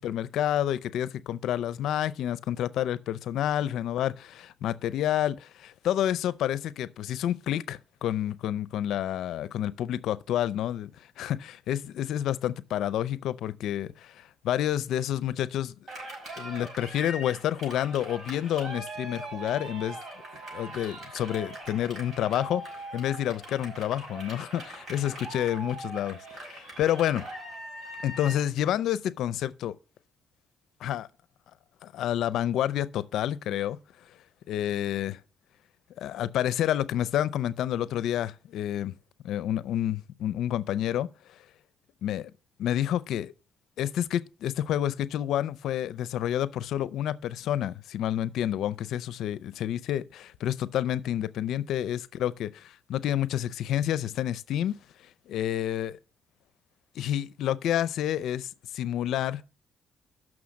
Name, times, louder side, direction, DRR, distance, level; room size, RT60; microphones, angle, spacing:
voice 1, 0.0-10.9 11.2-15.7 16.4-20.0 20.5-27.2 28.0-29.8 30.8-31.1 31.8-33.8 34.5-35.2 36.0-38.9 39.2-41.1 42.0-42.3 42.6-43.3 43.8-52.5 52.9-54.8 55.3-56.0 57.0-59.4, left 11 dB, 80° left, 0.5 m, -29 dB
Cheering, 15.9-28.5, right 1 dB, 45° right, 5.3 m, -41 dB
6.3 x 6.2 x 7.2 m
cardioid pair, 90°, 0 cm